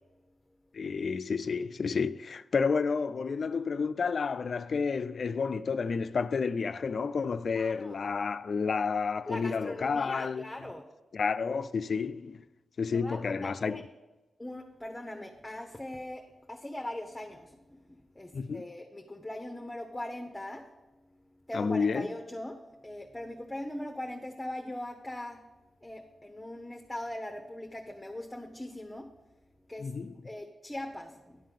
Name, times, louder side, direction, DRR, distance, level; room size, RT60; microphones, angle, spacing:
voice 1, 0.7-10.7 11.1-12.4 12.8-13.8 18.3-18.6 21.5-22.1 29.8-30.2, left 5 dB, 60° left, 0.3 m, -30 dB
voice 2, 7.5-8.0 9.3-10.8 12.9-13.8 14.4-20.7 21.5-25.4 25.8-29.1 29.7-29.9 30.2-31.4, left 1 dB, 10° left, 0.8 m, -40 dB
10.5 x 3.7 x 7.4 m
cardioid pair, 65°, 0 cm